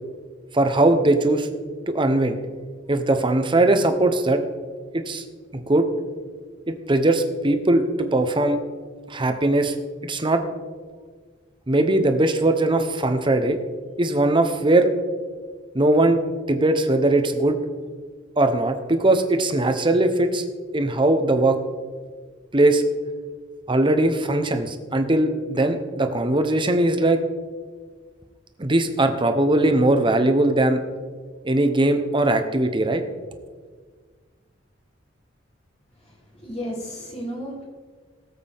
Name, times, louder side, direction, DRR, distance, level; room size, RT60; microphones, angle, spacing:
voice 1, 0.5-1.5 1.9-2.4 2.9-4.4 4.9-5.2 5.5-5.9 6.7-8.6 9.1-9.7 10.0-10.4 11.7-13.6 14.0-14.9 15.7-16.2 16.5-17.6 18.4-20.4 20.7-21.6 22.5-22.8 23.7-27.2 28.6-30.8 31.4-33.0, right 2 dB, 25° right, 7 dB, 0.9 m, -20 dB
voice 2, 36.0-37.6, equal, 35° left, -3 dB, 3.0 m, -33 dB
18.0 x 8.1 x 3.6 m, 1.5 s
head